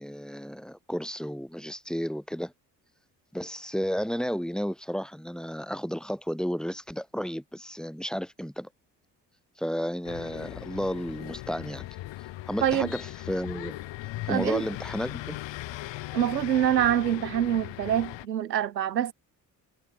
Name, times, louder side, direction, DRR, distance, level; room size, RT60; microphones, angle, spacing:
voice 1, 0.0-2.5 3.3-8.7 9.6-11.9 12.5-13.8 14.2-15.4, equal, ahead, 6.3 m, -32 dB
sound 1, 10.0-18.3, left 17 dB, 60° left, 6.7 m, -39 dB
voice 2, 14.3-14.6 16.1-19.1, right 10 dB, 85° right, 1.4 m, -25 dB
figure-of-eight pair, 45°, 48 cm